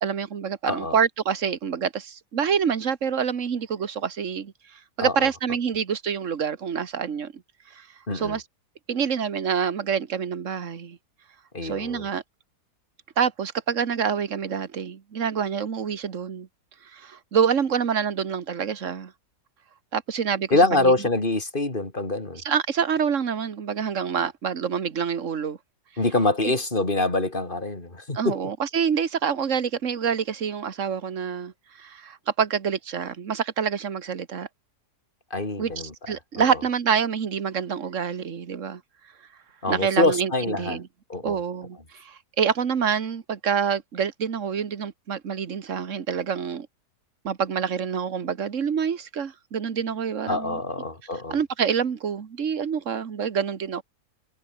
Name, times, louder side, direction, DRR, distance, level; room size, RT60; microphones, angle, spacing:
voice 1, 0.0-7.3 7.7-7.9 8.1-8.4 8.9-11.0 11.6-12.2 13.2-16.5 16.9-19.1 19.9-20.9 22.4-25.6 26.4-26.5 28.1-31.5 31.8-34.5 35.6-35.7 36.1-38.8 39.7-40.9 41.2-46.7 47.2-50.6 51.3-53.8, right 7 dB, 50° right, 1.7 m, -27 dB
voice 2, 5.0-5.3 8.1-8.4 11.5-12.1 20.5-22.4 26.0-28.4 35.3-35.9 36.4-36.5 39.6-40.8 41.1-41.4 50.3-51.4, left 2 dB, 30° left, 4.4 m, -25 dB
omnidirectional pair, 1.8 m